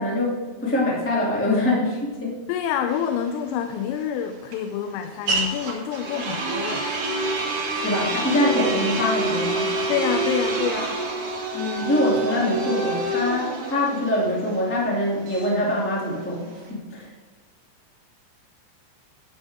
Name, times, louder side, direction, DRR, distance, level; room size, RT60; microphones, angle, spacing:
voice 1, 0.0-2.3 7.8-9.8 11.5-17.0, left 1 dB, 15° left, -4 dB, 0.5 m, -24 dB
voice 2, 2.5-6.9 9.9-11.0, left 8 dB, 85° left, 7 dB, 3.3 m, -27 dB
sound 1, 2.9-16.7, right 2 dB, 40° right, 3.4 m, -28 dB
12.0 x 10.0 x 3.6 m, 1.3 s
omnidirectional pair, 5.7 m